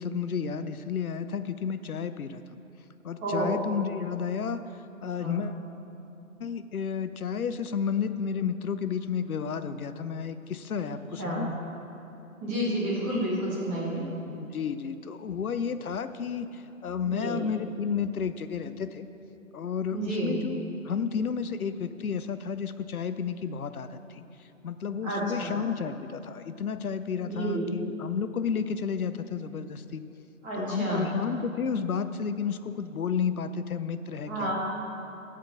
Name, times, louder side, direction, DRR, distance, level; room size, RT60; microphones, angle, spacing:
voice 1, 0.0-2.4 3.0-4.6 5.0-5.6 6.4-11.6 14.3-19.1 19.5-24.2 24.6-30.0 30.5-34.5, left 6 dB, 75° left, 11 dB, 0.7 m, -32 dB
voice 2, 3.2-3.5 5.2-5.4 11.2-11.4 12.4-14.0 17.0-17.4 19.9-20.3 25.0-25.6 27.2-27.7 30.4-31.0 34.3-34.5, right 1 dB, 5° right, -6 dB, 0.7 m, -30 dB
13.0 x 5.1 x 7.5 m, 3.0 s
figure-of-eight pair, 145°, 43 cm